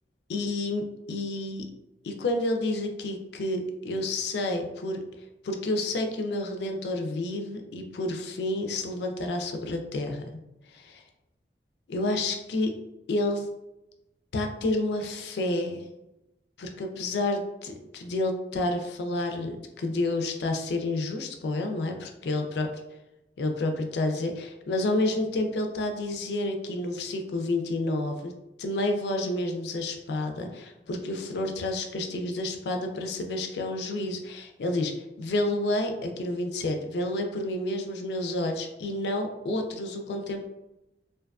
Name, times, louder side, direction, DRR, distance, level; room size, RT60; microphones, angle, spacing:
voice 1, 0.3-1.7 2.0-5.0 5.4-10.2 10.7-11.0 11.9-12.8 13.1-13.5 14.3-15.8 16.6-22.7 23.4-28.3 28.6-34.9 35.2-40.5, left 2 dB, 70° left, 4 dB, 0.3 m, -29 dB
2.5 x 2.3 x 2.3 m, 0.95 s
head